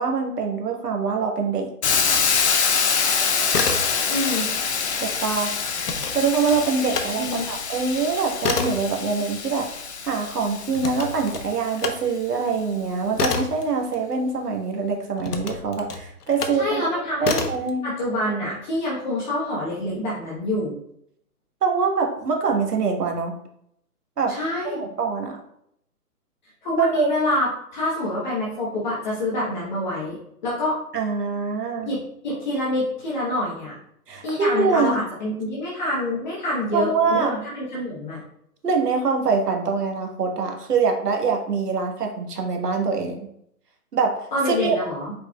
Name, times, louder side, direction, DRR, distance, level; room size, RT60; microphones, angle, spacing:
voice 1, 0.0-1.7 5.0-5.5 6.1-9.7 10.0-16.8 17.2-18.0 21.6-23.3 24.2-24.4 24.6-25.4 26.8-27.1 30.9-31.9 34.1-35.0 36.7-37.3 38.6-43.3 43.9-44.2 44.5-44.9, right 5 dB, 80° right, 2 dB, 1.4 m, -24 dB
Hiss, 1.8-11.7, left 6 dB, 45° left, 0.6 m, -25 dB
sound 1, 3.5-4.3 4.6-7.1 7.5-14.5 15.2-16.7 17.2-17.7, left 4 dB, 80° left, 1.0 m, -29 dB
voice 2, 4.1-4.5 7.2-7.5 16.6-17.4 17.8-20.8 24.3-24.8 26.6-30.8 31.8-33.7 34.2-38.2 44.3-45.1, left 1 dB, 30° left, -6 dB, 1.1 m, -26 dB
4.9 x 4.6 x 2.3 m, 0.73 s
hypercardioid pair, 155°, 46 cm